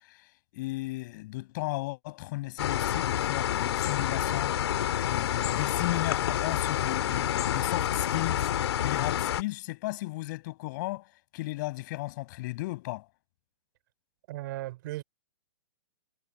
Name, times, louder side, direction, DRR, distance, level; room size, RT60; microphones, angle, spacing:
voice 1, 0.0-4.6 5.1-13.1, left 20 dB, 45° left, 7.9 m, -35 dB
sound 1, 2.6-9.4, left 11 dB, 65° left, 2.6 m, -28 dB
voice 2, 14.3-15.0, right 17 dB, 45° right, 3.8 m, -36 dB
hypercardioid pair, 150°, 15 cm